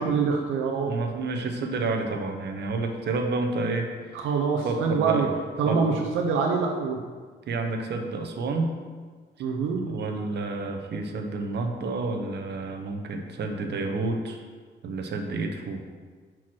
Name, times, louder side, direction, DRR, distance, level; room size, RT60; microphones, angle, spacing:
voice 1, 0.0-0.9 4.1-5.3 5.6-7.0 9.4-9.8, right 5 dB, 85° right, 1 dB, 0.7 m, -25 dB
voice 2, 0.9-4.3 4.6-5.3 5.7-6.0 7.5-8.7 9.8-14.4 14.8-15.8, right 3 dB, 60° right, 4 dB, 0.9 m, -30 dB
5.9 x 4.6 x 6.1 m, 1.5 s
cardioid pair, 90°, 20 cm